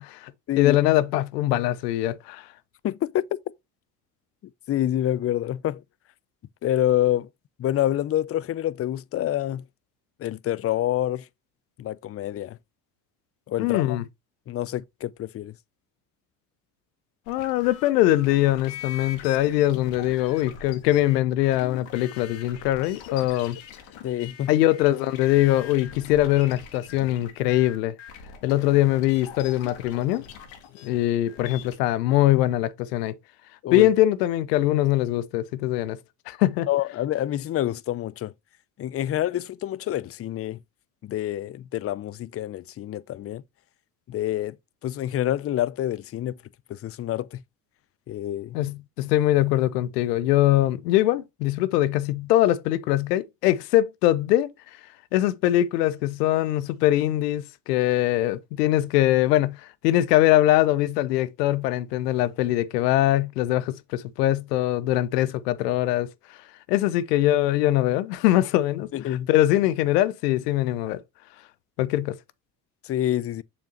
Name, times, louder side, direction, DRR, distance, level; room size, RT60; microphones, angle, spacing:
voice 1, 0.0-0.3 0.6-2.4 13.6-14.0 17.3-23.6 24.5-27.9 28.4-30.2 30.8-33.1 33.7-36.0 36.3-36.7 48.5-54.5 55.1-66.1 66.7-71.0 71.8-72.2, left 14 dB, 90° left, 0.6 m, -22 dB
voice 2, 2.8-3.3 4.7-5.8 6.6-7.3 7.6-9.6 10.2-11.2 11.8-12.6 13.5-14.0 14.5-15.5 24.0-24.5 33.6-33.9 36.7-38.3 38.8-40.6 41.0-43.4 44.1-44.6 44.8-46.4 46.7-47.4 48.1-48.6 68.9-69.3 72.8-73.4, left 12 dB, 30° left, 0.4 m, -27 dB
sound 1, 17.3-31.8, left 8 dB, 75° left, 1.5 m, -43 dB
6.8 x 5.3 x 2.9 m
hypercardioid pair, 60°, 47 cm